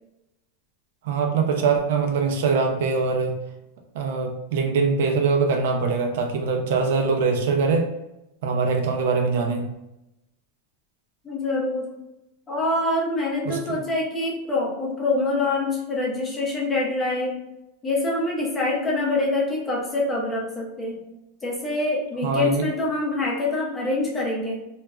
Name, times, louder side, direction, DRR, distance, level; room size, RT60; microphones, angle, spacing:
voice 1, 1.0-3.4 3.9-7.9 8.4-9.7 13.5-13.8 22.2-22.7, right 4 dB, 65° right, 4 dB, 0.4 m, -23 dB
voice 2, 11.2-11.9 12.5-17.4 17.8-21.0 21.4-24.6, left 2 dB, 10° left, -4 dB, 0.6 m, -25 dB
2.3 x 2.1 x 3.5 m, 0.89 s
supercardioid pair, 170°, 0 cm